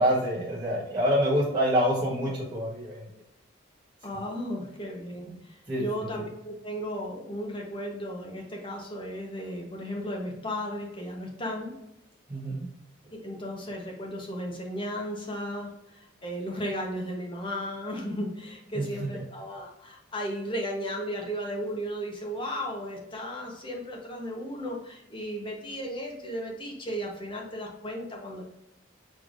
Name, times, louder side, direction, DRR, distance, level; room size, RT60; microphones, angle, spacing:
voice 1, 0.0-3.0 5.2-5.4 5.7-5.8 12.3-12.7 18.7-19.1, equal, 20° right, -9 dB, 1.0 m, -26 dB
voice 2, 4.0-11.7 13.2-28.4, equal, 25° left, 0 dB, 0.9 m, -35 dB
6.1 x 3.3 x 2.5 m, 0.86 s
head